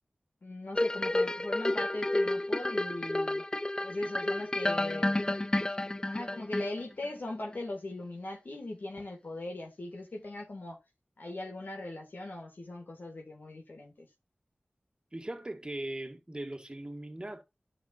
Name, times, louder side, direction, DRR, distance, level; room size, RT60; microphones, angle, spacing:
voice 1, 0.4-3.4 3.8-5.2 6.0-10.8 11.2-14.1, left 2 dB, 65° left, 1.9 m, -39 dB
sound 1, 0.8-7.0 7.5-7.6, left 1 dB, 20° left, 0.4 m, -31 dB
voice 2, 15.1-17.4, right 1 dB, 25° right, 1.8 m, -39 dB
11.5 x 6.3 x 2.5 m
wide cardioid pair, 60°, 3 cm